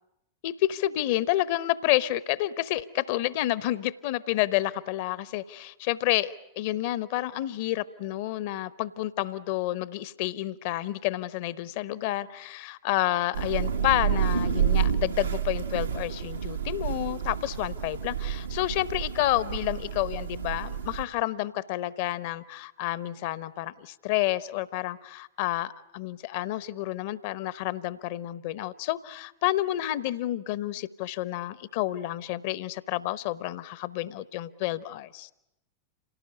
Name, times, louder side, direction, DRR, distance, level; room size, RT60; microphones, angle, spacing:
voice 1, 0.4-35.3, left 15 dB, 50° left, 19 dB, 0.9 m, -29 dB
Thunder / Rain, 13.3-21.0, right 8 dB, 75° right, 1.2 m, -29 dB
27.0 x 18.0 x 9.8 m, 0.87 s
figure-of-eight pair, 90°, 0 cm